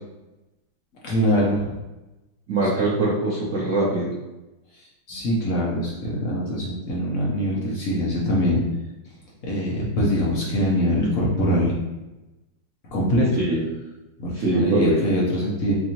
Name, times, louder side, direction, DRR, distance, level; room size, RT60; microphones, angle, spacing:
voice 1, 1.0-1.8 2.6-2.7 5.1-8.6 9.5-11.8 12.9-13.4 14.2-15.7, equal, 60° left, -4 dB, 0.9 m, -23 dB
voice 2, 2.5-4.1 13.4-13.7 14.3-15.0, right 2 dB, 85° right, -6 dB, 0.6 m, -22 dB
4.6 x 2.7 x 2.8 m, 1.0 s
omnidirectional pair, 2.2 m